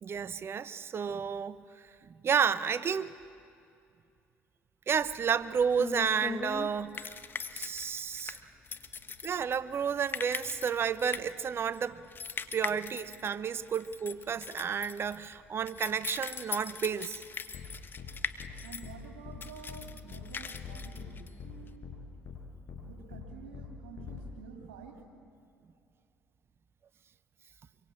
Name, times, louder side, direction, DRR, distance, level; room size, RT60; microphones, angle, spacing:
voice 1, 0.0-1.6 2.0-3.1 4.9-7.1 7.5-8.4 9.2-12.0 12.5-17.2, right 7 dB, 45° right, 1.0 m, -31 dB
sound 1, 5.0-21.7, left 5 dB, 40° left, 1.4 m, -41 dB
sound 2, 17.5-17.7 18.0-18.1 18.4-18.5 18.8-19.0 19.2-19.4 19.7-19.8 20.1-20.2 20.5-21.1 21.4-21.5 21.8-21.9 22.2-22.4 22.7-22.8 23.1-23.2 23.5-23.7 24.0-24.2, left 7 dB, 55° left, 7.0 m, -43 dB
voice 2, 18.6-22.2 22.8-25.0, right 6 dB, 85° right, 3.2 m, -50 dB
25.0 x 23.5 x 8.7 m
hypercardioid pair, 60°, 6 cm